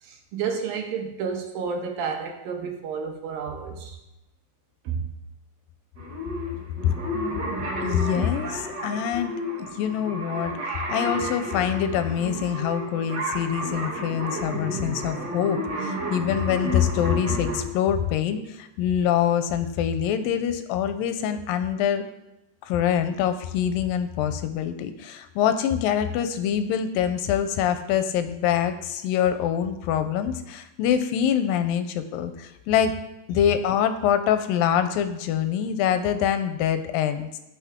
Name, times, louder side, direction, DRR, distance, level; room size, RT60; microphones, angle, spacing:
voice 1, 0.0-4.0 4.8-5.1, right 6 dB, 80° right, 3 dB, 2.9 m, -31 dB
sound 1, 6.0-17.6, right 1 dB, 40° right, 1.6 m, -31 dB
voice 2, 7.8-22.1 22.6-32.9 33.3-37.3, left 9 dB, 80° left, 10 dB, 2.3 m, -25 dB
16.5 x 6.0 x 3.6 m, 0.92 s
omnidirectional pair, 4.1 m